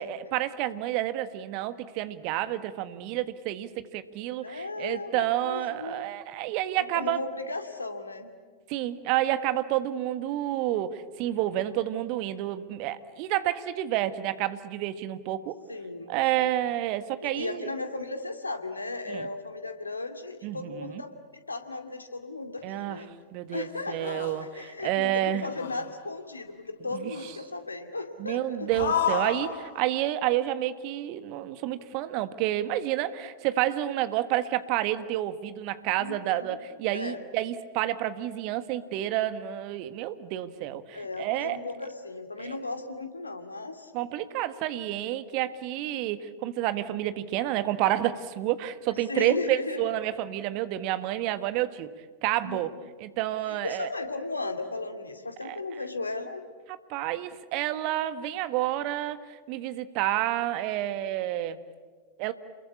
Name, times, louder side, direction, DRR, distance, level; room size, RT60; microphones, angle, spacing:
voice 1, 0.0-7.2 8.7-15.6 16.1-17.7 19.1-19.3 20.4-21.0 22.6-23.0 23.3-24.5 24.8-25.5 26.9-27.1 28.2-41.6 42.4-42.6 43.9-51.9 52.2-52.7 53.0-53.9 55.4-55.6 56.9-61.6 62.2-62.3, right 13 dB, 45° right, 12 dB, 1.4 m, -29 dB
voice 2, 4.4-6.1 6.8-8.3 15.7-16.5 17.2-21.1 21.5-23.1 23.5-28.7 36.0-36.6 36.9-37.2 40.9-43.9 49.1-49.8 52.4-52.7 53.5-56.4, left 3 dB, 80° left, 7 dB, 2.3 m, -36 dB
sound 1, 23.5-23.6 24.0-24.7 25.4-26.0 27.1-27.3 28.7-29.9, left 7 dB, 65° left, 1.7 m, -31 dB
28.5 x 22.0 x 8.5 m, 1.5 s
figure-of-eight pair, 90°, 0 cm